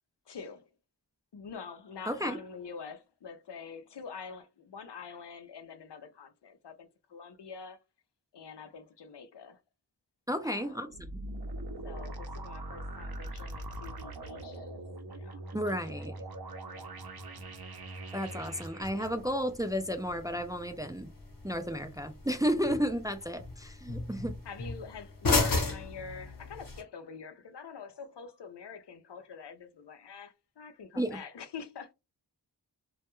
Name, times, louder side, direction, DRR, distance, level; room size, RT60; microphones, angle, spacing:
voice 1, 0.3-0.6 1.3-7.8 8.3-9.6 10.4-11.0 11.8-14.8 15.1-15.5 16.6-17.0 17.3-17.5 18.2-19.4 24.4-31.9, left 6 dB, 80° left, 0.5 m, -46 dB
voice 2, 2.1-2.4 10.3-11.2 15.5-16.1 18.1-21.1 21.4-24.4 31.0-31.2, equal, 10° right, 0.3 m, -32 dB
sound 1, 10.9-19.1, right 1 dB, 65° right, 0.6 m, -41 dB
sound 2, 18.8-26.8, left 3 dB, 55° left, 0.8 m, -35 dB
2.2 x 2.2 x 2.9 m
wide cardioid pair, 45°, 40 cm